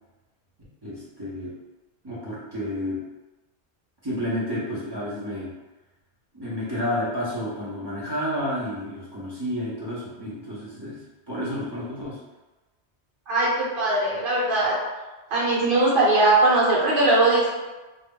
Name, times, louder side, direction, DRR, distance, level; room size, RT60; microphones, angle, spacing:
voice 1, 0.8-1.5 2.0-3.0 4.0-5.5 6.3-12.2, left 1 dB, 25° right, -9 dB, 0.6 m, -30 dB
voice 2, 13.3-14.8 15.3-17.5, right 2 dB, 50° right, -7 dB, 1.0 m, -20 dB
2.3 x 2.0 x 3.5 m, 1.1 s
omnidirectional pair, 1.2 m